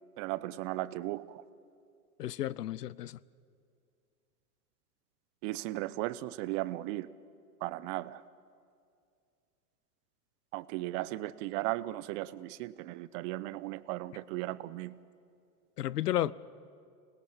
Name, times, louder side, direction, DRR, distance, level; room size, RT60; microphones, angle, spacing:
voice 1, 0.2-1.4 5.4-7.1 7.6-8.2 10.5-15.0 16.2-16.3, right 17 dB, 50° right, 0.9 m, -36 dB
voice 2, 2.2-3.2 15.8-16.3, left 13 dB, 85° left, 0.7 m, -32 dB
26.0 x 20.0 x 7.2 m
hypercardioid pair, 95°, 46 cm